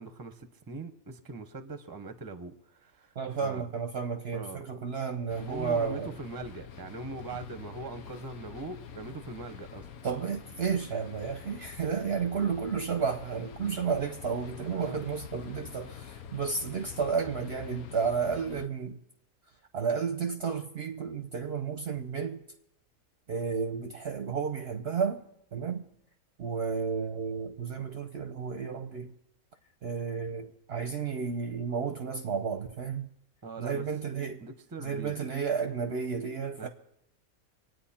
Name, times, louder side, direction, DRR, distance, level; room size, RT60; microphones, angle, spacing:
voice 1, 0.0-3.1 3.4-3.6 4.3-4.6 5.4-9.9 14.7-15.0 33.4-33.8 34.4-35.2 36.6-36.7, right 3 dB, 20° right, 0.8 m, -41 dB
voice 2, 3.2-6.2 10.0-19.0 19.7-22.4 23.3-25.2 25.5-25.9 26.4-29.1 29.8-33.1 33.6-34.4 34.8-36.7, right 6 dB, 55° right, 0.8 m, -32 dB
sound 1, 5.3-18.7, left 8 dB, 80° left, 1.3 m, -46 dB
25.5 x 9.3 x 4.3 m
omnidirectional pair, 1.5 m